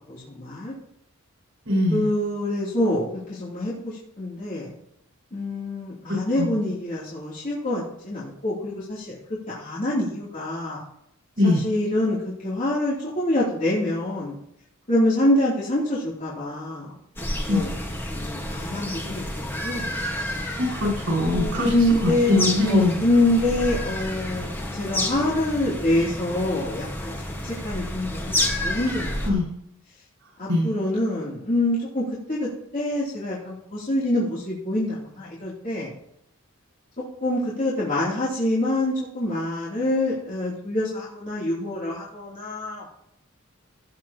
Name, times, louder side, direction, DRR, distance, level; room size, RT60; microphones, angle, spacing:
voice 1, 0.1-0.7 1.9-3.0 3.3-4.7 5.3-9.2 9.5-10.8 11.4-14.4 14.9-16.9 17.5-17.7 18.1-19.9 21.2-24.5 24.8-27.1 27.4-29.4 30.4-35.9 37.2-42.8, left 1 dB, 40° left, -8 dB, 3.1 m, -26 dB
voice 2, 1.7-2.1 6.1-6.6 11.4-11.6 17.5-17.6 20.6-21.7 22.0-23.0 29.2-29.4 30.4-30.7, left 2 dB, 80° right, -4 dB, 5.2 m, -22 dB
sound 1, 17.2-29.3, left 1 dB, 10° left, 1.5 m, -30 dB
17.0 x 8.6 x 3.0 m, 0.76 s
head